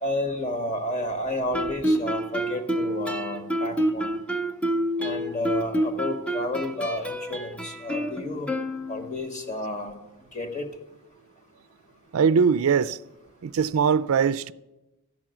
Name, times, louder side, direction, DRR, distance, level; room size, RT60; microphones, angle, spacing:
voice 1, 0.0-4.1 5.0-8.5 8.9-9.9 10.3-10.7, left 1 dB, 35° left, 1.5 m, -31 dB
Guitar, 1.5-9.3, right 1 dB, 5° left, 0.6 m, -28 dB
voice 2, 12.1-13.0 13.4-14.5, right 6 dB, 65° right, 0.4 m, -21 dB
13.5 x 6.0 x 8.9 m
head